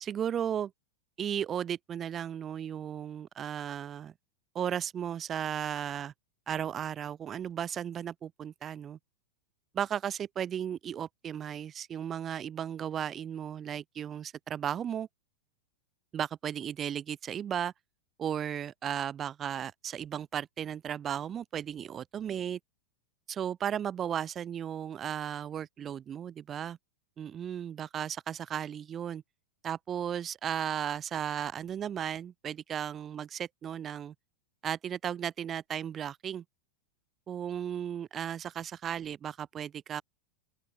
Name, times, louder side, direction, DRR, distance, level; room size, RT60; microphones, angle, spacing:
voice 1, 0.0-0.7 1.2-4.1 4.5-6.1 6.5-9.0 9.7-15.1 16.1-17.7 18.2-22.6 23.3-26.8 27.2-29.2 29.6-34.1 34.6-36.4 37.3-40.0, right 9 dB, 25° right, 0.3 m, -35 dB
open air
figure-of-eight pair, 90°, 0 cm